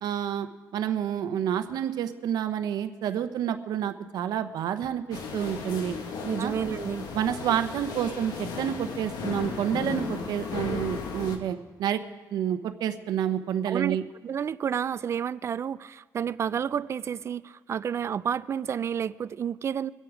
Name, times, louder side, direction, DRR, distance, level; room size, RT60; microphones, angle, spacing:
voice 1, 0.0-0.5 0.7-5.9 6.4-6.5 7.1-12.0 12.3-14.0, right 9 dB, 80° right, 0.8 m, -29 dB
sound 1, 5.1-11.4, left 5 dB, 85° left, 1.6 m, -35 dB
voice 2, 6.2-7.1 13.7-14.0 14.2-19.9, right 8 dB, 45° right, 0.4 m, -30 dB
24.0 x 8.4 x 4.9 m
cardioid pair, 125°, 7 cm